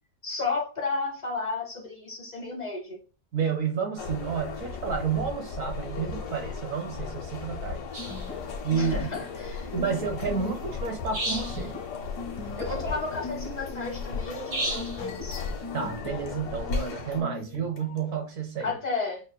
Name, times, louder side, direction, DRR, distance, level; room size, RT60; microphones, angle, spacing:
voice 1, 0.2-3.0 8.8-9.7 12.6-15.4 18.6-19.2, left 3 dB, 35° left, 0.7 m, -33 dB
voice 2, 3.3-7.8 8.6-8.9 9.7-11.7 15.7-18.7, right 6 dB, 60° right, 1.0 m, -30 dB
sound 1, 4.0-17.2, left 5 dB, 75° left, 1.5 m, -36 dB
sound 2, 7.9-8.3 11.1-11.7 14.5-15.0, right 1 dB, 80° right, 2.2 m, -32 dB
sound 3, 8.0-18.2, left 3 dB, 60° left, 1.2 m, -41 dB
6.3 x 2.5 x 2.2 m
omnidirectional pair, 1.7 m